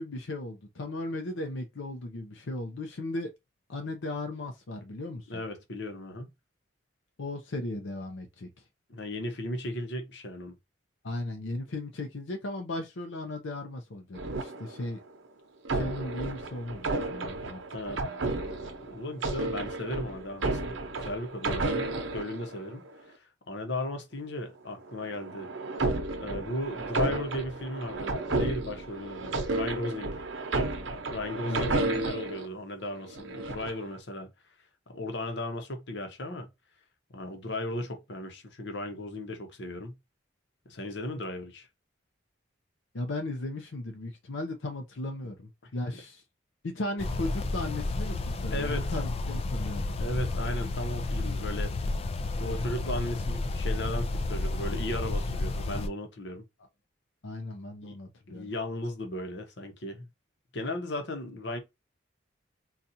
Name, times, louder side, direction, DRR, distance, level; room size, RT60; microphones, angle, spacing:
voice 1, 0.0-3.3 3.7-5.4 7.2-8.5 11.0-15.0 15.7-17.6 31.4-31.7 42.9-46.2 46.6-50.0 57.2-58.5, left 2 dB, 90° left, 0.6 m, -36 dB
voice 2, 5.3-6.3 8.9-10.5 17.7-18.1 18.4-25.5 26.2-30.2 31.1-34.3 34.9-36.5 37.1-39.9 40.7-41.7 48.5-49.0 50.0-51.7 52.4-56.5 57.8-58.0 58.3-60.1 60.5-61.6, left 1 dB, 65° left, 0.9 m, -36 dB
sound 1, 14.1-15.1 15.6-22.9 24.8-32.5 33.1-33.9, right 2 dB, 85° right, 0.8 m, -32 dB
sound 2, 47.0-55.9, left 2 dB, 30° left, 0.3 m, -31 dB
4.0 x 2.4 x 2.7 m
head